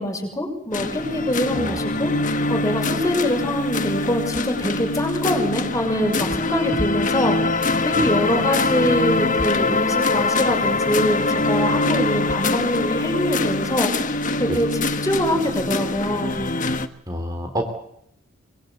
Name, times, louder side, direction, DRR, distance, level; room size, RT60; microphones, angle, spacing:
voice 1, 0.0-2.1 2.5-13.9 14.4-16.4, left 1 dB, 20° left, 4 dB, 6.6 m, -24 dB
sound 1, 0.7-16.9, left 2 dB, 40° left, 1.5 m, -23 dB
voice 2, 17.1-17.7, equal, 20° right, 4 dB, 3.5 m, -28 dB
25.5 x 22.0 x 8.1 m, 0.73 s
head